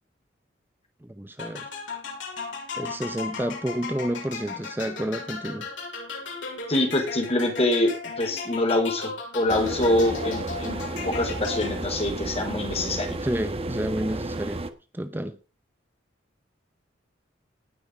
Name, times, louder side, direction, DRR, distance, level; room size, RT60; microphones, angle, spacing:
voice 1, 1.0-1.7 2.7-5.7 13.2-14.6 14.9-15.4, right 1 dB, 10° right, 0.7 m, -30 dB
sound 1, 1.4-12.1, left 4 dB, 85° left, 6.9 m, -36 dB
voice 2, 6.7-13.2, left 1 dB, 35° left, 4.1 m, -25 dB
sound 2, 9.5-14.7, right 2 dB, 30° right, 1.3 m, -32 dB
19.0 x 6.6 x 5.1 m
head